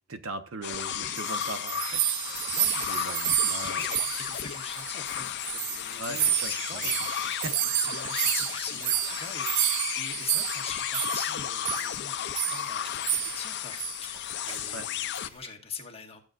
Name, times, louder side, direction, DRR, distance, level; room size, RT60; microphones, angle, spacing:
voice 1, 0.1-2.0 2.9-3.8 5.9-6.5 7.4-7.5 14.7-14.9, right 2 dB, 70° right, 8 dB, 0.9 m, -39 dB
sound 1, 0.6-15.3, left 10 dB, 50° left, 0.4 m, -34 dB
sound 2, 0.9-5.2 5.4-11.3 11.7-11.9 12.4-12.7 13.0-13.5 13.8-14.0 14.5-14.8, right 13 dB, 55° right, 0.3 m, -30 dB
sound 3, 1.9-15.5, right 1 dB, 25° right, 1.5 m, -50 dB
voice 2, 2.5-3.2 3.6-16.2, left 6 dB, 30° left, 0 dB, 1.5 m, -42 dB
13.5 x 7.9 x 2.5 m, 0.39 s
head